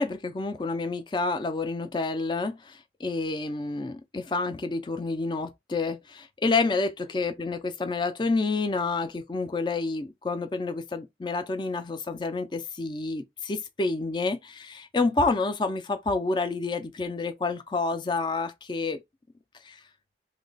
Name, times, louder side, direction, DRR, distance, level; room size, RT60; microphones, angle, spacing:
voice 1, 0.0-6.9 7.1-19.0 19.6-19.8, left 3 dB, 25° left, 0.4 m, -29 dB
3.0 x 2.2 x 3.9 m
head